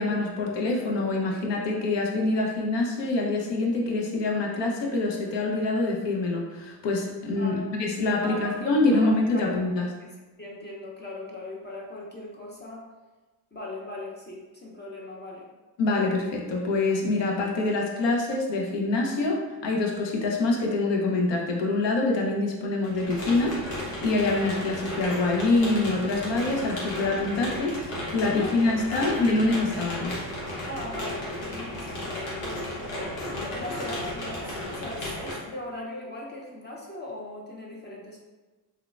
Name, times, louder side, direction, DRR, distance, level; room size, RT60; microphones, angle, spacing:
voice 1, 0.0-9.9 15.8-23.6 23.8-30.2, left 2 dB, 60° left, 0 dB, 0.8 m, -25 dB
voice 2, 7.4-7.7 8.2-9.4 10.4-12.9 13.5-15.5 28.3-29.1 30.7-38.2, left 1 dB, 20° left, -3 dB, 0.6 m, -39 dB
sound 1, 22.8-35.3, left 1 dB, 85° left, 1.1 m, -34 dB
3.5 x 2.2 x 2.4 m, 1.2 s
hypercardioid pair, 55°, 49 cm